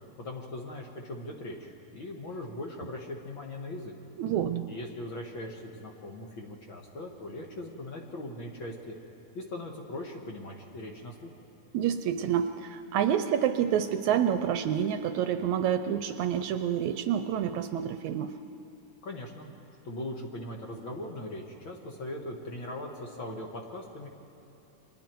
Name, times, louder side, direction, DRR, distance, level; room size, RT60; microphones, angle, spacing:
voice 1, 0.2-3.9 4.7-9.0 9.4-11.3 19.0-19.5 19.8-24.1, left 1 dB, 45° left, 0 dB, 2.0 m, -40 dB
voice 2, 4.2-4.7 11.7-18.4, right 9 dB, 75° right, 9 dB, 1.9 m, -28 dB
30.0 x 24.5 x 4.6 m, 3.0 s
omnidirectional pair, 3.6 m